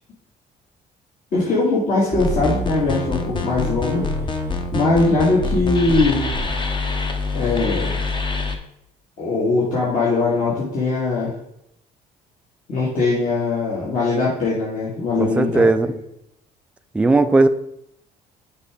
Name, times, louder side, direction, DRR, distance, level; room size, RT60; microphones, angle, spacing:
voice 1, 1.3-4.1 4.7-6.2 7.3-8.1 9.2-11.3 12.7-15.9, left 3 dB, 50° left, -7 dB, 2.0 m, -21 dB
sound 1, 2.1-8.6, left 2 dB, 30° left, 0.9 m, -25 dB
voice 2, 15.2-15.9 16.9-17.5, right 2 dB, 5° right, 9 dB, 0.3 m, -16 dB
6.7 x 4.9 x 3.6 m, 0.78 s
cardioid pair, 110°, 17 cm